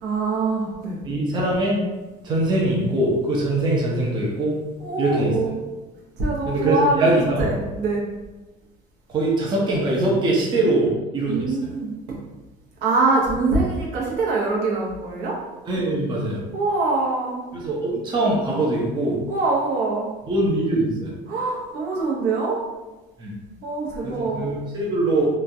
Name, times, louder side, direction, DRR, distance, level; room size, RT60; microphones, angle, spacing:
voice 1, 0.0-1.0 4.8-5.6 6.2-8.1 11.3-12.2 12.8-15.3 16.5-17.5 19.3-20.1 21.3-22.6 23.6-24.5, right 3 dB, 70° right, -4 dB, 0.9 m, -24 dB
voice 2, 1.0-1.8 2.2-4.6 5.0-5.3 6.5-7.5 9.1-11.7 15.7-16.4 17.5-19.2 20.3-21.1 23.2-23.3 24.0-25.3, right 2 dB, 25° right, -3 dB, 0.5 m, -22 dB
3.0 x 2.3 x 2.6 m, 1.1 s
cardioid pair, 145°, 17 cm